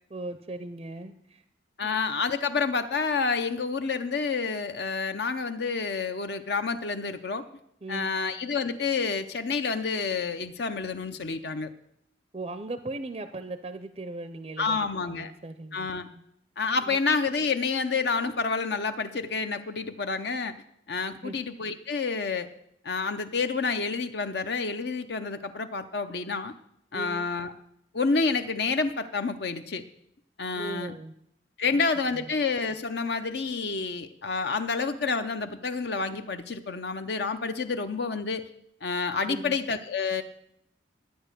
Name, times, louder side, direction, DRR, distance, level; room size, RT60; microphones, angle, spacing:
voice 1, 0.1-1.4 1.8-2.0 7.8-8.2 12.3-16.2 16.9-17.0 21.2-21.4 26.9-27.3 30.5-31.1 31.7-31.8 32.1-32.3 39.3-39.6, right 2 dB, 30° right, 10 dB, 0.5 m, -39 dB
voice 2, 1.8-7.5 7.9-11.7 14.6-15.3 15.7-16.1 16.6-20.6 20.9-22.5 22.8-26.5 26.9-27.5 27.9-29.8 30.4-30.9 31.6-38.5 38.8-40.2, left 4 dB, 60° left, 8 dB, 0.6 m, -29 dB
12.0 x 9.0 x 6.6 m, 0.76 s
head